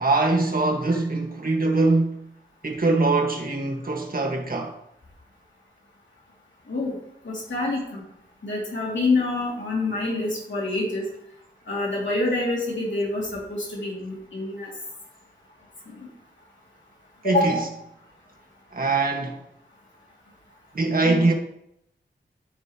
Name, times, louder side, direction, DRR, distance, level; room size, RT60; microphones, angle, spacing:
voice 1, 0.0-2.2 2.6-4.8 17.2-17.6 18.7-19.4 20.7-21.3, right 3 dB, 50° right, 1.7 m, -22 dB
voice 2, 7.2-8.0 8.4-11.0 11.7-14.7 17.2-17.6, left 2 dB, 80° left, 2.6 m, -26 dB
13.5 x 5.3 x 3.0 m
wide cardioid pair, 70°, 19 cm